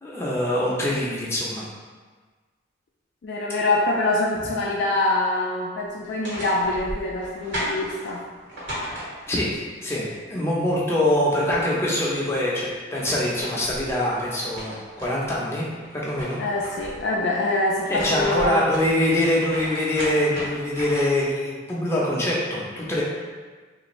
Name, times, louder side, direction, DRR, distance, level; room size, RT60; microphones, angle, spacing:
voice 1, 0.0-1.6 9.3-9.5 9.8-15.7 15.9-16.4 17.9-23.0, left 1 dB, 15° left, -5 dB, 0.6 m, -24 dB
voice 2, 3.2-8.2 16.4-18.7, left 2 dB, 60° left, -3 dB, 0.3 m, -24 dB
sound 1, 6.0-9.5 11.0-11.1 11.3-12.2 12.7-15.3 15.7-17.1 17.7-21.3, equal, 65° right, 1.3 m, -35 dB
3.4 x 2.5 x 3.0 m, 1.4 s
head